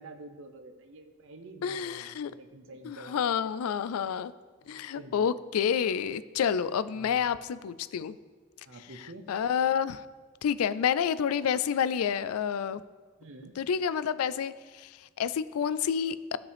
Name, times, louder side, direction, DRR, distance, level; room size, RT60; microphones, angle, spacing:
voice 1, 0.0-3.6 4.6-5.3 6.9-7.3 8.6-9.2 13.2-13.6, right 2 dB, 65° right, 6 dB, 0.8 m, -48 dB
voice 2, 1.6-2.3 2.8-4.3 4.7-8.2 9.3-10.0 10.4-12.8 13.6-16.4, left 7 dB, 85° left, 16 dB, 0.3 m, -29 dB
14.0 x 5.2 x 3.4 m, 1.4 s
head